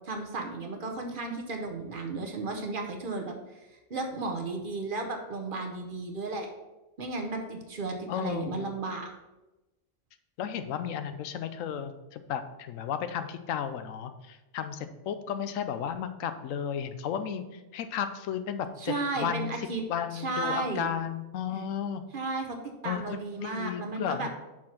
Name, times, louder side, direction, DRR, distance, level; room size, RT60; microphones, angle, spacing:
voice 1, 0.0-3.3 3.9-6.5 7.0-9.1 18.8-19.8 20.1-20.9 22.1-22.6 22.8-24.3, right 3 dB, 45° right, 3 dB, 0.9 m, -34 dB
voice 2, 8.1-8.6 10.4-22.0 22.8-24.3, left 8 dB, 90° left, 10 dB, 1.0 m, -34 dB
6.2 x 4.4 x 5.7 m, 1.0 s
omnidirectional pair, 1.3 m